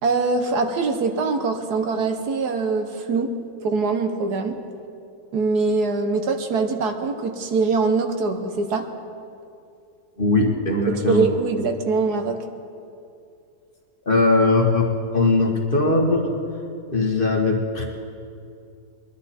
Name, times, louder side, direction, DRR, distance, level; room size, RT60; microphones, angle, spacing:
voice 1, 0.0-3.3 3.6-4.6 5.3-8.8 10.9-12.4, right 4 dB, 65° right, 6 dB, 1.5 m, -23 dB
voice 2, 10.2-11.2 14.0-16.2 16.9-17.8, left 2 dB, 30° left, 0 dB, 1.6 m, -20 dB
22.0 x 11.5 x 4.3 m, 2.5 s
omnidirectional pair, 1.9 m